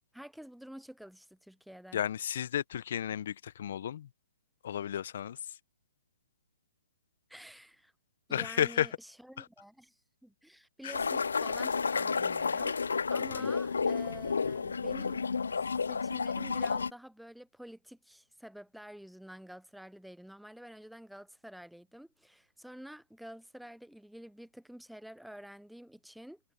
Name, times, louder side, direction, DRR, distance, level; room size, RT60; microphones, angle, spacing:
voice 1, 0.1-2.0 7.3-7.9 8.3-12.8 13.1-15.3 15.8-26.4, equal, ahead, 0.5 m, -49 dB
voice 2, 1.9-4.1 4.6-5.4 8.3-8.9 9.4-9.5 10.8-10.9 13.4-13.5, left 10 dB, 60° left, 0.7 m, -33 dB
sound 1, 10.9-16.9, left 5 dB, 85° left, 0.3 m, -31 dB
hypercardioid pair, 140°, 0 cm